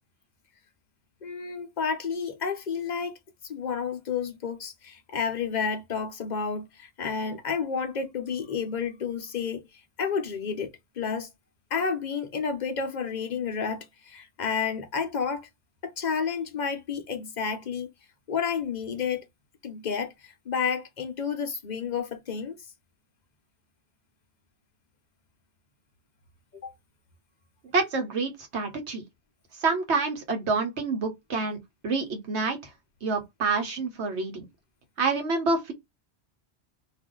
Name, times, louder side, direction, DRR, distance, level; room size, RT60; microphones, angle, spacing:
voice 1, 1.2-3.1 3.4-9.6 10.0-10.7 11.0-11.3 11.7-15.5 15.8-17.9 18.3-19.2 19.6-22.5 26.6-26.7, left 6 dB, 45° left, 0.8 m, -30 dB
voice 2, 27.7-29.0 29.6-31.6 31.8-32.6 33.0-34.5 35.0-35.7, right 4 dB, 85° right, 1.2 m, -27 dB
2.5 x 2.5 x 3.7 m
omnidirectional pair, 1.1 m